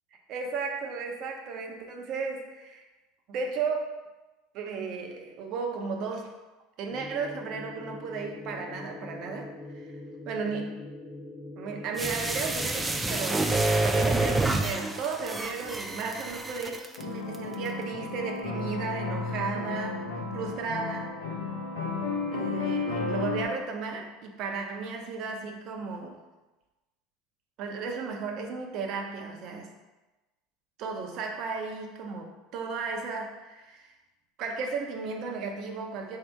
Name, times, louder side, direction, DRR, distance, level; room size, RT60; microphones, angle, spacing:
voice 1, 0.3-2.8 3.3-4.0 4.5-6.3 6.8-9.9 10.3-10.8 11.6-20.1 20.3-21.1 22.3-26.2 27.6-29.7 30.8-33.9 34.4-36.2, right 4 dB, 55° right, 2 dB, 0.7 m, -34 dB
sound 1, 6.9-13.4, left 2 dB, 30° left, 0.7 m, -43 dB
sound 2, 12.0-17.0 17.3-17.4, right 2 dB, 15° right, 0.4 m, -28 dB
sound 3, 17.0-23.4, left 3 dB, 85° left, 0.8 m, -33 dB
3.3 x 2.8 x 4.5 m, 1.1 s
hypercardioid pair, 95°, 0 cm